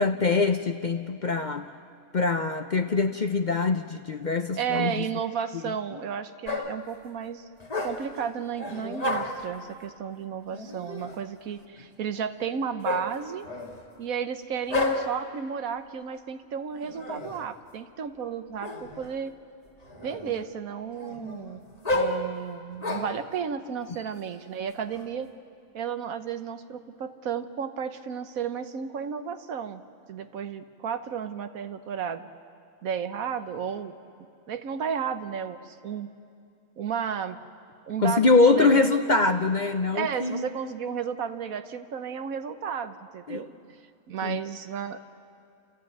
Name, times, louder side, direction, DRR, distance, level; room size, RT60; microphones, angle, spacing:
voice 1, 0.0-1.7 2.1-4.9 38.0-40.5 43.3-43.4 44.2-44.4, left 3 dB, 45° left, 7 dB, 0.6 m, -23 dB
voice 2, 4.5-7.5 7.8-13.5 14.0-19.3 20.0-21.6 21.9-25.3 25.7-29.8 30.1-32.2 32.8-33.9 34.5-36.1 36.8-37.4 37.9-38.9 39.9-43.5 44.1-45.0, right 7 dB, 85° right, 9 dB, 1.4 m, -33 dB
sound 1, 6.5-6.9 7.6-8.2 8.6-9.5 10.5-11.3 12.8-13.9 14.7-15.3 16.7-17.5 18.6-19.1 19.6-20.5 20.9-23.3 23.9-25.0, left 2 dB, 30° left, 1.7 m, -32 dB
29.5 x 14.0 x 9.2 m, 2.4 s
omnidirectional pair, 1.4 m